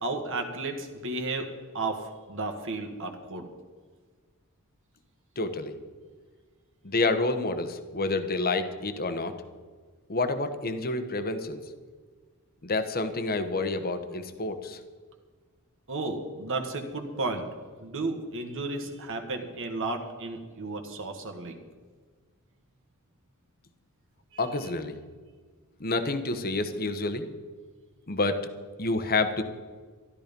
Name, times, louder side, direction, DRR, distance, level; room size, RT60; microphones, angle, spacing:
voice 1, 0.0-1.5 1.7-3.5 15.9-17.5 17.8-21.6 24.3-24.4, right 3 dB, 60° right, 4 dB, 1.6 m, -33 dB
voice 2, 5.4-5.8 6.8-9.3 10.1-11.6 12.6-14.8 24.4-25.0 25.8-27.3 28.1-28.5 28.8-29.4, left 3 dB, 45° left, 9 dB, 1.1 m, -28 dB
13.0 x 12.5 x 5.3 m, 1.5 s
head